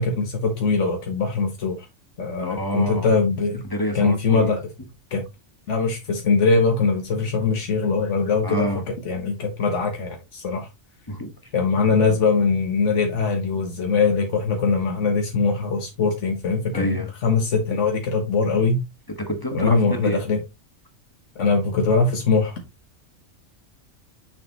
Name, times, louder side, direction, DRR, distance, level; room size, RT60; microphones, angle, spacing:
voice 1, 0.0-1.8 2.2-3.6 3.9-4.6 5.1-5.3 5.7-8.7 9.0-10.7 11.5-18.8 19.5-20.4 21.4-22.6, left 4 dB, 85° left, 1.5 m, -22 dB
voice 2, 2.4-3.1 3.6-4.5 8.4-8.8 11.1-11.3 16.7-17.1 19.2-20.2, equal, 20° left, 1.4 m, -27 dB
6.8 x 6.3 x 3.0 m
omnidirectional pair, 1.2 m